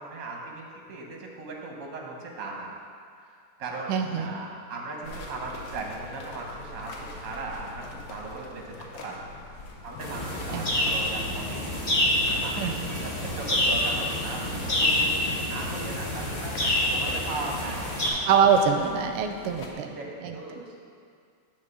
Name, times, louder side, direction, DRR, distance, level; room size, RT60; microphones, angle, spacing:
voice 1, 0.0-2.7 3.2-9.4 9.8-11.6 12.0-15.1 15.5-16.5 16.9-17.9 19.6-20.8, right 3 dB, 55° right, -1 dB, 0.9 m, -38 dB
voice 2, 3.9-4.3 10.5-11.0 12.6-12.7 18.3-19.9 20.2-20.3, right 6 dB, 85° right, 5 dB, 1.5 m, -24 dB
sound 1, 5.0-19.7, left 3 dB, 70° left, 0.8 m, -44 dB
sound 2, 10.0-18.1, left 1 dB, 45° left, 0.5 m, -27 dB
8.8 x 3.4 x 6.6 m, 2.2 s
omnidirectional pair, 2.4 m